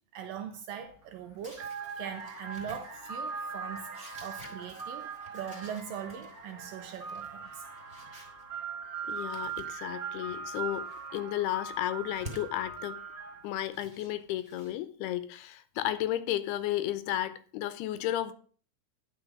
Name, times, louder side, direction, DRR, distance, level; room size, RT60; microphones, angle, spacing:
voice 1, 0.1-1.7 2.0-3.9 4.2-7.6, right 8 dB, 75° right, 2.2 m, -41 dB
sound 1, 0.9-1.1 1.5-13.6, right 5 dB, 55° right, 0.9 m, -40 dB
sound 2, 1.4-8.4 9.0-10.0 10.4-11.1 11.9-12.5 13.5-14.7, right 1 dB, 5° right, 2.3 m, -51 dB
voice 2, 9.1-13.0 13.4-18.3, left 13 dB, 80° left, 2.7 m, -33 dB
11.0 x 6.2 x 6.0 m
omnidirectional pair, 4.7 m